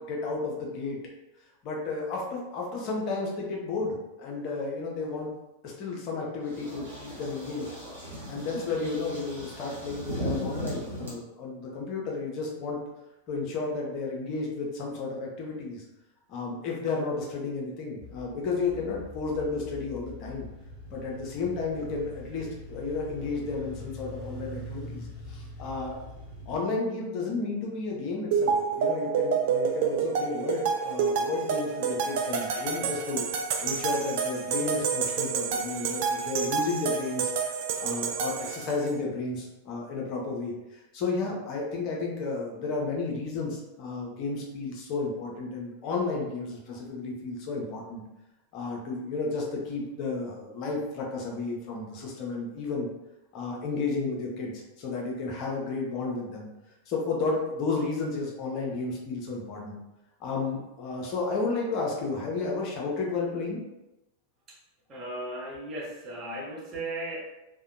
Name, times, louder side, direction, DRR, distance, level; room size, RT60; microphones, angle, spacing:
voice 1, 0.1-1.0 1.6-5.3 5.6-7.7 8.0-12.8 13.3-15.8 16.3-20.5 20.9-25.9 26.5-33.2 33.6-37.3 37.8-48.0 48.5-52.9 53.3-56.5 56.9-59.8 60.2-63.6, left 3 dB, 40° left, -2 dB, 0.6 m, -32 dB
sound 1, 6.4-11.1, equal, 70° right, 0.9 m, -37 dB
sound 2, 18.0-26.6, left 1 dB, ahead, 1.0 m, -43 dB
sound 3, 28.3-38.9, right 6 dB, 50° right, 0.3 m, -28 dB
voice 2, 64.9-67.2, right 1 dB, 30° right, -3 dB, 0.7 m, -36 dB
2.6 x 2.1 x 2.5 m, 0.97 s
figure-of-eight pair, 90°, 0 cm